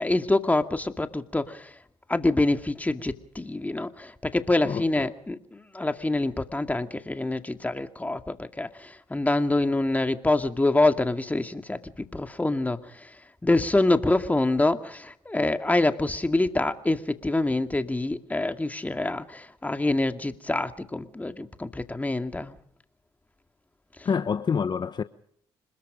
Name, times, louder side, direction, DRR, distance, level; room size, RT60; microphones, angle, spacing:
voice 1, 0.0-1.7 2.1-13.2 13.4-22.6 24.0-24.1, left 2 dB, 15° left, 2.2 m, -26 dB
voice 2, 4.6-5.1 24.0-25.0, left 6 dB, 45° left, 1.0 m, -27 dB
26.5 x 21.0 x 5.1 m
supercardioid pair, 55°, 10 cm